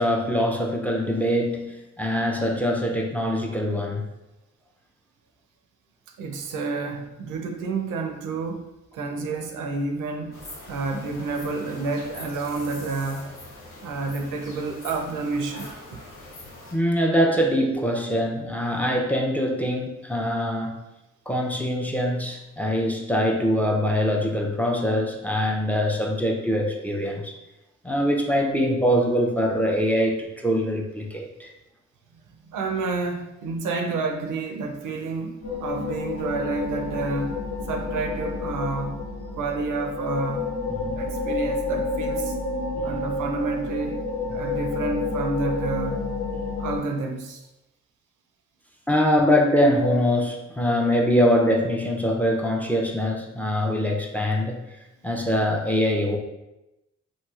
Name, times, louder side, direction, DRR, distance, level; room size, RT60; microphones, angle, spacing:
voice 1, 0.0-4.0 16.7-20.8 21.3-27.3 27.8-31.5 40.8-41.0 42.7-43.0 48.9-54.6 55.0-56.2, equal, 5° left, 1 dB, 0.4 m, -23 dB
voice 2, 6.2-8.7 8.9-10.4 10.7-13.3 13.8-16.0 32.5-37.4 37.7-39.0 39.4-40.5 40.9-42.3 42.8-44.0 44.3-46.1 46.6-47.4, right 3 dB, 90° right, 4 dB, 0.5 m, -29 dB
sound 1, 10.3-16.7, left 1 dB, 85° left, 0.8 m, -42 dB
sound 2, 35.4-46.8, left 3 dB, 55° left, 0.9 m, -30 dB
2.9 x 2.6 x 2.3 m, 0.95 s
cardioid pair, 60°, 30 cm